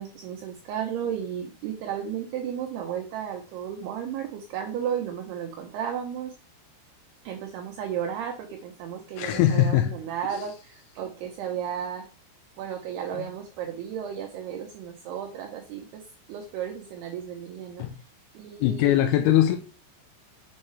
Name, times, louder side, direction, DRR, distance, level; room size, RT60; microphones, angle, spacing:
voice 1, 0.0-6.3 7.2-12.1 12.6-16.0 16.3-17.9 18.3-19.0, right 9 dB, 80° right, 3 dB, 2.4 m, -34 dB
voice 2, 9.2-9.9 10.3-10.4 17.8-17.9 18.6-19.6, left 12 dB, 90° left, 5 dB, 3.1 m, -21 dB
7.3 x 4.5 x 3.1 m, 0.36 s
omnidirectional pair, 5.3 m